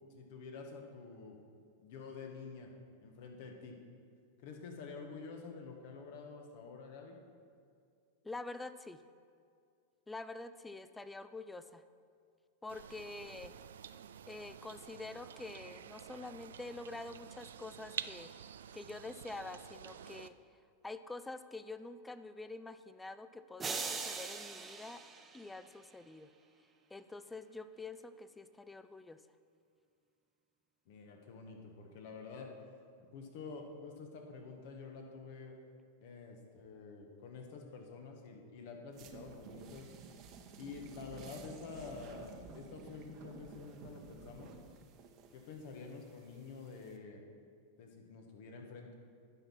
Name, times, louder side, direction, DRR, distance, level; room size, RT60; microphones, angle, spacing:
voice 1, 0.1-1.4 1.8-2.7 3.0-3.8 4.4-7.2 30.8-32.5 33.1-35.5 36.0-39.9 40.5-44.5 45.3-47.2 47.8-48.9, left 4 dB, 60° left, 2 dB, 1.5 m, -48 dB
voice 2, 8.2-9.0 10.1-11.8 12.6-13.5 14.3-18.3 18.7-20.3 20.8-25.0 25.3-26.3 26.9-29.2, left 3 dB, 10° left, 12 dB, 0.4 m, -46 dB
sound 1, 12.7-20.3, right 9 dB, 80° right, 0.3 m, -49 dB
sound 2, 23.6-25.9, right 4 dB, 20° right, 0.9 m, -41 dB
sound 3, 38.9-47.0, right 5 dB, 45° right, 1.0 m, -53 dB
10.0 x 5.6 x 5.9 m, 2.3 s
hypercardioid pair, 110°, 0 cm